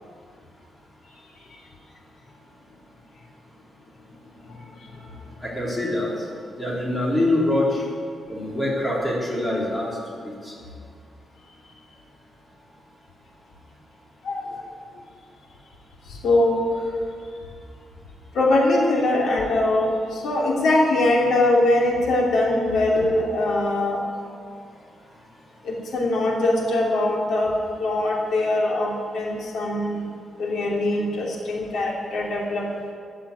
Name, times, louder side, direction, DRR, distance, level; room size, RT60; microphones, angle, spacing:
voice 1, 5.4-6.1 6.6-7.8 8.3-9.9 10.2-10.5 23.0-23.1, left 1 dB, 15° left, -5 dB, 4.0 m, -24 dB
voice 2, 14.2-14.8 16.1-16.7 18.3-24.0 25.6-27.5 27.8-30.1 30.4-32.7, left 2 dB, 75° left, -2 dB, 3.0 m, -22 dB
14.0 x 11.5 x 8.5 m, 2.2 s
wide cardioid pair, 170°, 0 cm